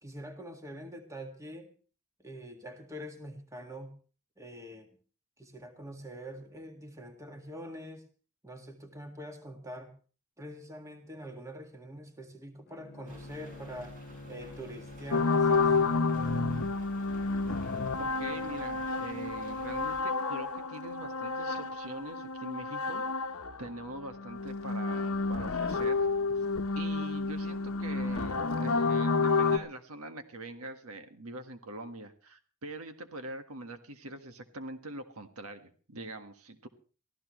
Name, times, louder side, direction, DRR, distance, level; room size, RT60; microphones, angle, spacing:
voice 1, 0.0-1.7 2.2-3.9 4.4-4.9 5.4-8.0 8.4-9.9 10.4-14.0 14.3-15.8, equal, 15° right, 5 dB, 1.9 m, -45 dB
Bowed string instrument, 12.7-16.8, left 2 dB, 45° left, 1.1 m, -48 dB
sound 1, 13.1-20.0, equal, 40° right, 5.4 m, -53 dB
sound 2, 15.1-23.7 24.0-29.6, left 4 dB, 70° left, 1.0 m, -30 dB
voice 2, 18.0-23.0 23.3-26.1 26.7-36.7, right 1 dB, 75° right, 7 dB, 1.6 m, -43 dB
24.0 x 15.0 x 3.2 m, 0.39 s
head